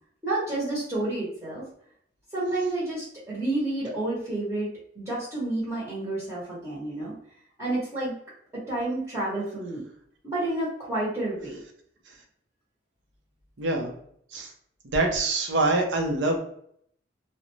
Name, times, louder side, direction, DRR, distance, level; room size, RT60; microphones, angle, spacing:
voice 1, 0.2-1.6 2.3-4.7 4.9-7.1 7.6-8.1 8.7-9.8 10.2-11.6, right 2 dB, 15° right, -9 dB, 0.8 m, -29 dB
voice 2, 13.6-13.9 14.3-14.5 14.8-16.4, right 2 dB, 85° right, 2 dB, 0.6 m, -25 dB
2.5 x 2.1 x 3.0 m, 0.66 s
head